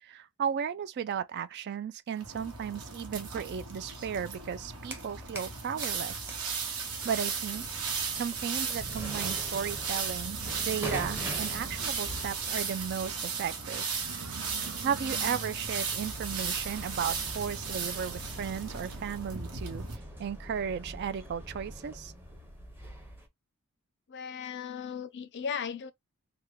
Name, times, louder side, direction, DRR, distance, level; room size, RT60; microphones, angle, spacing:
voice 1, 0.0-6.3 7.0-7.7 8.2-10.4 10.6-13.9 14.8-19.8 20.2-22.1, right 7 dB, 50° right, 0.3 m, -35 dB
sound 1, 2.2-20.0, right 5 dB, 85° right, 1.1 m, -36 dB
sound 2, 4.8-5.6 5.8-23.3, equal, 10° right, 0.7 m, -44 dB
sound 3, 6.9-19.1, right 3 dB, 65° right, 0.8 m, -48 dB
voice 2, 24.1-25.9, left 7 dB, 50° left, 0.5 m, -36 dB
3.5 x 2.2 x 3.2 m
head